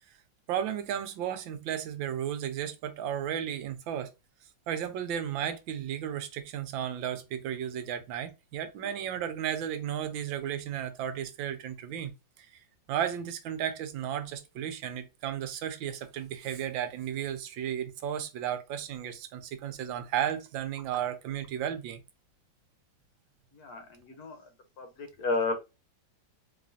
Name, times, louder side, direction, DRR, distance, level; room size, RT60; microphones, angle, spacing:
voice 1, 0.5-4.1 4.7-12.1 12.9-22.0, right 9 dB, 85° right, 1.4 m, -34 dB
voice 2, 23.6-24.4 24.8-25.5, left 3 dB, 60° left, 1.1 m, -32 dB
4.1 x 3.0 x 2.6 m
omnidirectional pair, 2.1 m